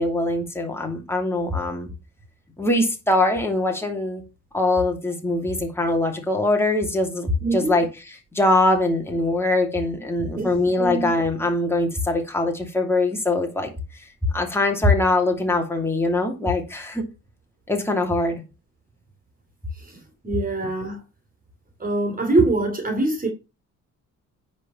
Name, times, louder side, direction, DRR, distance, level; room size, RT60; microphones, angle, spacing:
voice 1, 0.0-1.9 2.6-4.2 4.5-13.7 14.3-17.0 17.7-18.4, left 2 dB, 10° left, 2.6 m, -22 dB
voice 2, 7.4-7.7 10.3-10.5 10.8-11.1 19.9-21.0 21.8-23.3, right 2 dB, 30° right, 3.2 m, -23 dB
9.7 x 4.6 x 5.6 m
cardioid pair, 90°, 30 cm